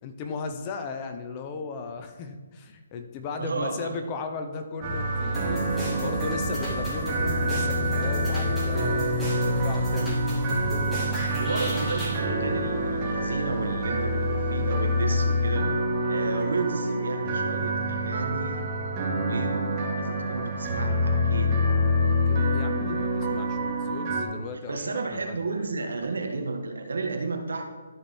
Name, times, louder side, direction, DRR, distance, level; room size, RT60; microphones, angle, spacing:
voice 1, 0.0-10.2 22.3-25.5, left 4 dB, 25° left, 7 dB, 0.9 m, -36 dB
voice 2, 3.4-3.9 11.4-15.7 16.1-18.7 19.2-19.6 19.9-21.8 24.5-27.6, right 3 dB, 80° right, 4 dB, 1.7 m, -32 dB
sound 1, 4.8-24.2, equal, 25° right, 2.5 m, -26 dB
sound 2, 5.3-12.2, right 1 dB, ahead, 2.8 m, -35 dB
13.0 x 5.4 x 4.5 m, 1.4 s
hypercardioid pair, 155°, 0 cm